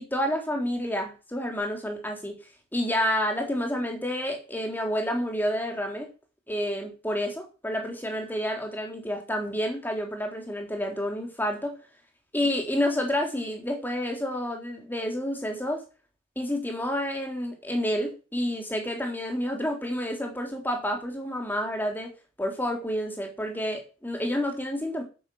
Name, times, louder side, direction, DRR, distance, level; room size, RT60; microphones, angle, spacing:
voice 1, 0.0-2.3 2.7-6.1 6.5-11.8 12.3-15.8 16.3-22.1 22.4-25.0, equal, 10° left, 2 dB, 3.2 m, -29 dB
8.8 x 8.4 x 7.0 m, 0.32 s
head